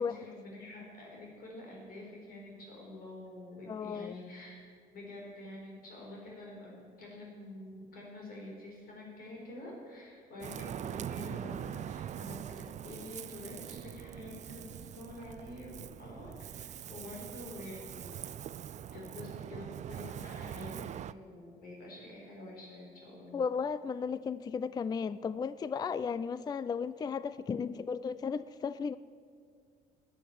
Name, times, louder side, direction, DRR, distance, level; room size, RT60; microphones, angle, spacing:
voice 1, 0.0-4.6 4.9-14.6 14.9-18.1 18.9-23.4, left 1 dB, 60° left, -2 dB, 4.3 m, -47 dB
voice 2, 3.7-4.2 23.3-29.0, left 6 dB, 25° left, 16 dB, 0.4 m, -35 dB
Ocean, 10.4-21.1, right 10 dB, 45° right, 0.5 m, -43 dB
13.0 x 10.0 x 9.2 m, 2.1 s
cardioid pair, 110°, 17 cm